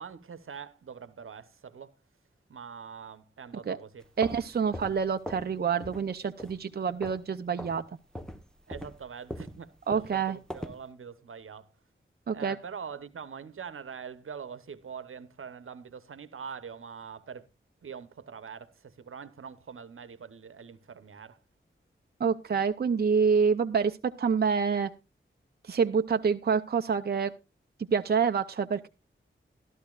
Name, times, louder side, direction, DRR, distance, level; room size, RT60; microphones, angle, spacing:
voice 1, 0.0-1.9 2.5-4.1 8.7-11.7 12.3-17.5 17.8-21.4, right 6 dB, 85° right, 0.9 m, -44 dB
sound 1, 4.0-5.5 5.8-6.1 6.4-7.3 7.6-7.8 8.1-10.8, equal, 5° left, 1.0 m, -41 dB
voice 2, 4.2-7.8 9.9-10.4 12.3-12.6 22.2-24.9 25.7-27.3 27.9-28.9, right 6 dB, 50° right, 0.6 m, -27 dB
14.0 x 12.5 x 2.4 m
wide cardioid pair, 100°, 21 cm